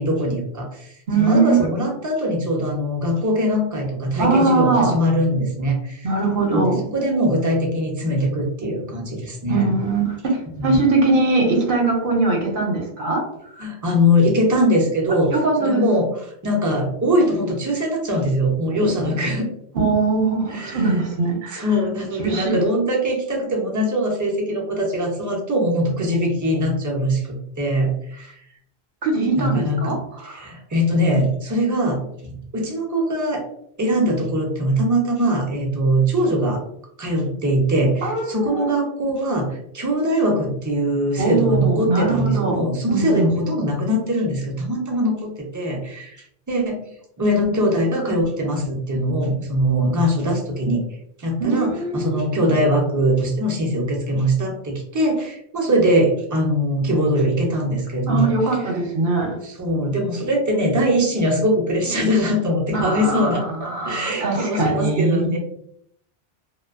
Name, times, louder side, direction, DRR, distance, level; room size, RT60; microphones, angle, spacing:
voice 1, 0.0-0.9 1.2-6.1 6.5-9.7 10.6-10.8 13.6-16.1 16.4-19.5 20.5-21.0 21.5-28.4 29.4-30.0 30.2-33.4 33.8-36.6 37.0-46.2 46.5-46.9 47.2-50.8 51.2-58.3 59.4-65.4, equal, 25° right, -1 dB, 0.4 m, -22 dB
voice 2, 1.1-1.6 4.2-4.9 6.0-6.8 9.5-13.2 13.6-13.7 15.3-15.8 18.7-18.9 19.7-21.7 22.2-22.6 29.0-30.5 38.0-38.6 41.2-43.3 51.4-52.2 58.1-59.4 62.7-63.3 63.6-65.4, right 3 dB, 60° right, 1 dB, 0.8 m, -21 dB
2.5 x 2.2 x 2.4 m, 0.72 s
omnidirectional pair, 1.1 m